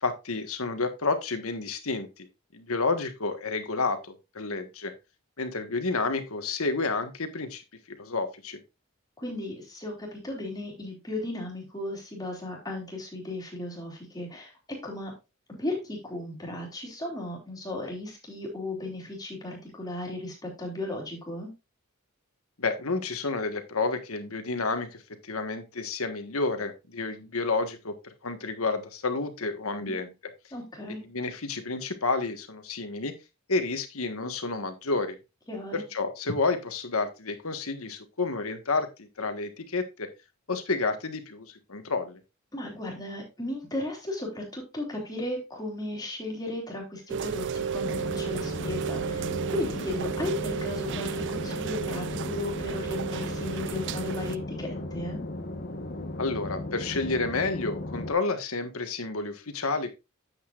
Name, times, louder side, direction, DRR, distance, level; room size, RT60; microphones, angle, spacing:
voice 1, 0.0-2.3 2.5-4.9 5.4-7.6 8.0-8.6 22.6-27.9 28.2-30.1 30.9-33.1 33.5-35.2 35.7-40.1 40.5-42.2 56.2-59.9, left 3 dB, 80° left, 8 dB, 1.4 m, -30 dB
voice 2, 9.2-14.5 14.8-15.1 15.5-21.5 29.8-29.9 30.5-31.0 35.5-35.8 42.5-55.2, left 1 dB, 20° left, -1 dB, 3.2 m, -35 dB
Rain, 47.1-54.4, right 7 dB, 55° right, 0.4 m, -33 dB
sound 1, 47.8-58.1, left 1 dB, 45° left, 1.1 m, -36 dB
9.4 x 8.1 x 2.4 m, 0.25 s
head